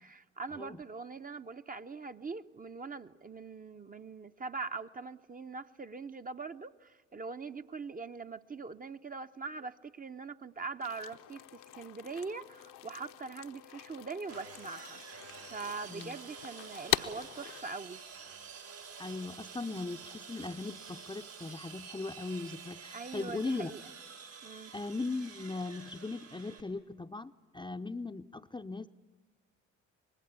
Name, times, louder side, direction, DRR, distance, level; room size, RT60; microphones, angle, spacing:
voice 1, 0.0-15.2 15.5-18.0 22.9-23.8 24.4-24.7, right 4 dB, 20° right, 8 dB, 0.8 m, -42 dB
voice 2, 0.5-0.8 15.9-16.2 19.0-23.7 24.7-28.9, left 3 dB, 10° left, 8 dB, 0.7 m, -39 dB
sound 1, 10.8-17.6, left 12 dB, 60° left, 1.0 m, -41 dB
Sawing, 14.3-26.6, right 6 dB, 85° right, 3.9 m, -49 dB
25.0 x 20.5 x 8.3 m, 1.3 s
figure-of-eight pair, 45°, 38 cm